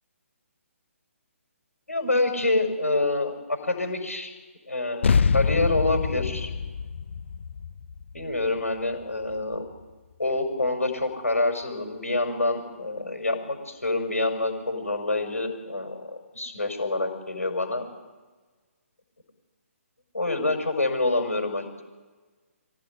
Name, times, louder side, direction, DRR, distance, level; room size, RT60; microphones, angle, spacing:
voice 1, 1.9-4.3 4.7-6.5 8.1-9.6 10.2-17.8 20.1-21.8, left 2 dB, 80° left, 4 dB, 5.4 m, -27 dB
sound 1, 5.0-9.8, left 5 dB, 55° left, 0.7 m, -26 dB
25.0 x 15.5 x 9.8 m, 1.3 s
figure-of-eight pair, 140°, 8 cm